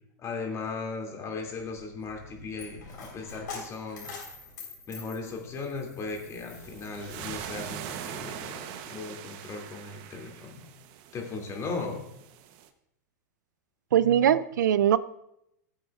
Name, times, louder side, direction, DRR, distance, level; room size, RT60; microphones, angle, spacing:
voice 1, 0.2-4.1 4.9-10.7 11.1-12.0, left 4 dB, 30° left, 1 dB, 2.6 m, -37 dB
Coin (dropping), 1.4-7.5, left 4 dB, 85° left, 4.0 m, -45 dB
sound 1, 6.5-12.7, right 10 dB, 50° right, 0.9 m, -42 dB
voice 2, 13.9-15.0, right 10 dB, 80° right, 16 dB, 0.4 m, -21 dB
16.5 x 8.0 x 2.4 m, 0.79 s
hypercardioid pair, 110°, 10 cm